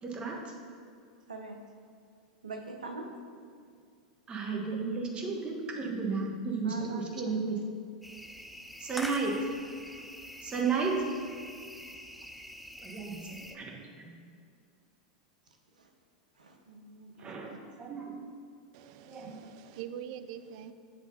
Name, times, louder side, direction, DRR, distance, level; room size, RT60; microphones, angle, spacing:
voice 1, 0.0-0.5 4.3-7.6 8.8-9.5 10.4-11.2 12.8-14.3 17.2-18.2 19.0-19.4, right 4 dB, 25° right, 0 dB, 1.3 m, -33 dB
voice 2, 2.4-3.1 6.6-7.1 15.8-15.9 16.4-17.3, right 3 dB, 90° right, 3 dB, 0.8 m, -43 dB
sound 1, 8.0-13.6, equal, ahead, 0.5 m, -45 dB
voice 3, 18.7-20.7, right 9 dB, 55° right, 11 dB, 0.4 m, -44 dB
7.8 x 3.4 x 5.4 m, 2.2 s
hypercardioid pair, 95°, 4 cm